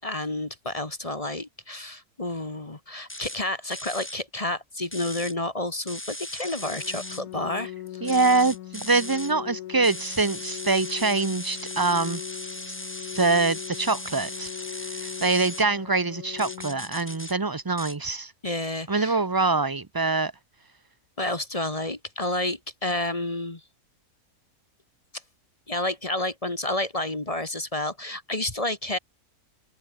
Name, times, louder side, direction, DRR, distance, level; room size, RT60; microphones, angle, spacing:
voice 1, 0.0-8.0 18.4-19.2 21.2-23.6 25.7-29.0, left 1 dB, 25° left, 1.6 m, -30 dB
sound 1, 3.1-3.4 3.7-4.2 4.9-5.3 5.9-7.2 8.0-9.3 9.8-15.6 16.4-17.3 17.8-18.0, left 1 dB, 10° left, 1.6 m, -38 dB
Organ, 6.6-17.6, left 13 dB, 80° left, 1.1 m, -40 dB
voice 2, 8.0-12.2 13.1-14.5 14.8-18.3 18.9-20.3, right 3 dB, 30° right, 0.4 m, -24 dB
open air
omnidirectional pair, 1.6 m